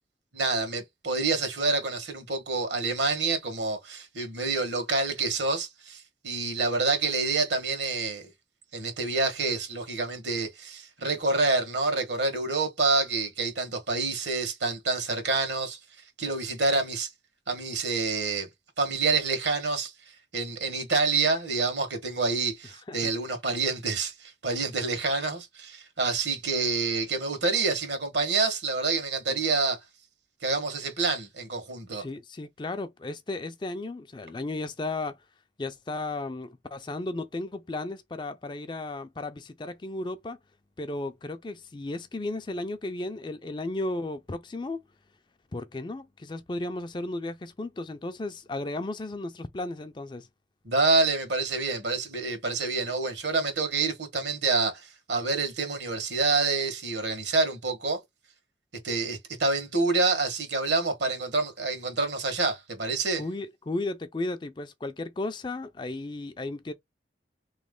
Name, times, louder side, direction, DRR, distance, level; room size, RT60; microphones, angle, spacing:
voice 1, 0.3-8.3 8.7-15.8 16.2-17.1 17.5-18.5 18.8-19.9 20.3-29.8 30.4-32.0 50.6-58.0 58.8-63.2, right 3 dB, 75° right, 1.6 m, -27 dB
voice 2, 31.9-35.2 35.6-40.4 40.8-44.8 45.5-50.3 63.2-66.7, left 2 dB, 25° left, 0.4 m, -34 dB
3.5 x 3.1 x 3.7 m
head